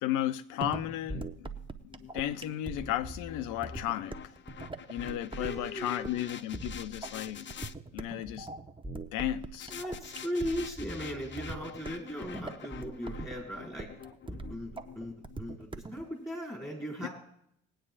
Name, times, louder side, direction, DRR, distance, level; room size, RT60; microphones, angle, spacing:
voice 1, 0.0-1.5 2.1-4.1 4.9-7.5 7.9-8.5 9.1-9.8 17.0-17.1, left 13 dB, 75° left, 0.7 m, -34 dB
sound 1, 0.6-16.0, right 2 dB, 15° right, 1.1 m, -42 dB
sound 2, 1.5-7.7 9.6-15.8, left 8 dB, 35° left, 0.6 m, -47 dB
voice 2, 5.4-6.3 9.7-13.9 14.5-17.1, equal, 10° left, 5.4 m, -38 dB
21.0 x 9.0 x 2.5 m
hypercardioid pair, 55°, 31 cm